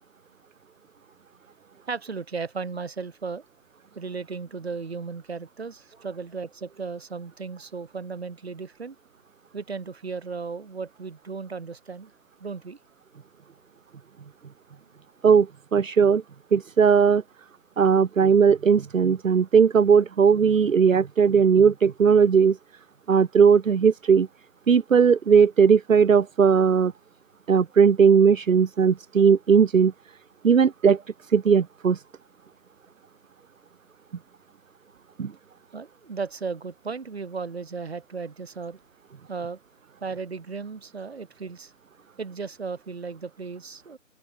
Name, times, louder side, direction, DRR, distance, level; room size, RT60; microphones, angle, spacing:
voice 1, 1.9-3.4 3.9-8.9 9.5-12.1 12.4-12.8 35.7-38.8 39.3-39.6 40.0-41.7 42.2-44.0, right 5 dB, 50° right, 6.9 m, -35 dB
voice 2, 15.2-16.2 16.5-17.2 17.8-22.6 23.1-24.3 24.7-26.9 27.5-29.9 30.4-31.0 31.3-32.0 35.2-35.3, right 6 dB, 80° right, 0.9 m, -18 dB
open air
figure-of-eight pair, 170°, 39 cm